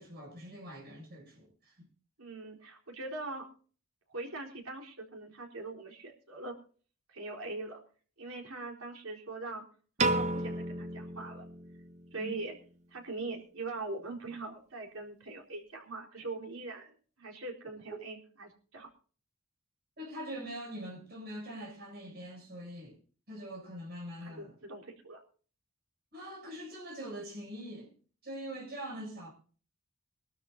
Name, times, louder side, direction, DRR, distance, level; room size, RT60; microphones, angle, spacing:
voice 1, 0.0-1.9 12.2-12.3 20.0-23.0 23.3-24.6 26.1-27.9 28.2-29.3, equal, 50° right, 7.6 m, -43 dB
voice 2, 2.2-3.5 4.1-6.5 7.1-7.8 8.2-9.6 10.0-11.4 12.1-12.5 12.9-16.9 17.2-18.9 24.2-25.2, right 2 dB, 80° right, 4.1 m, -42 dB
Piano, 10.0-12.3, right 2 dB, 35° right, 1.0 m, -33 dB
23.0 x 13.0 x 2.7 m
head